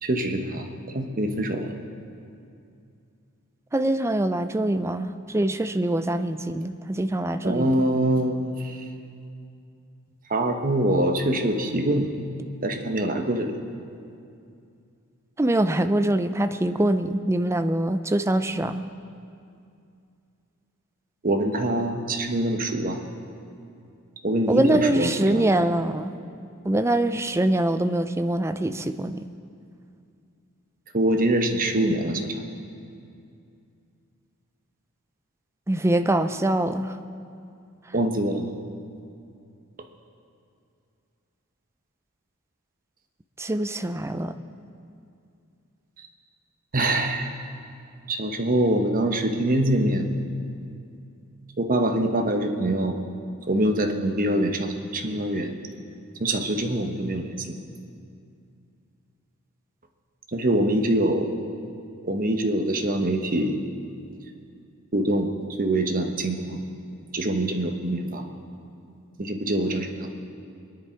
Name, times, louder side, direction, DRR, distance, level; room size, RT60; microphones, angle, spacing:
voice 1, 0.0-0.7 0.9-1.8 7.4-8.8 10.3-12.1 12.6-13.5 21.2-23.0 24.2-25.5 30.9-32.4 37.9-38.5 46.0-46.1 46.7-47.3 48.1-50.1 51.6-53.0 53.5-55.5 56.2-57.6 60.3-61.3 62.0-63.6 64.9-65.3 65.6-66.6 67.1-68.2 69.2-70.1, right 1 dB, 40° right, 4 dB, 1.1 m, -24 dB
voice 2, 3.7-7.8 15.4-18.8 24.5-26.1 26.6-29.3 32.2-32.3 35.7-37.0 43.4-44.3, right 1 dB, 10° right, 9 dB, 0.5 m, -24 dB
22.5 x 10.5 x 4.6 m, 2.5 s
head